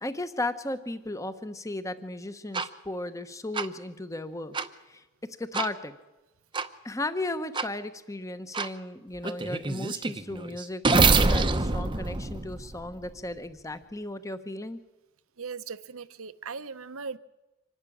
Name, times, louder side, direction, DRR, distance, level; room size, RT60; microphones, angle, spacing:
voice 1, 0.0-4.5 4.9-5.9 6.8-14.8, left 2 dB, 15° left, 11 dB, 1.0 m, -35 dB
sound 1, 2.5-2.7 3.5-3.7 4.5-4.7 5.5-5.7 6.5-6.7 7.5-7.7 8.5-8.7 9.2-13.1, right 3 dB, 20° right, 0.8 m, -25 dB
voice 2, 15.4-17.2, right 5 dB, 70° right, 14 dB, 0.9 m, -38 dB
25.5 x 12.0 x 10.0 m, 1.1 s
head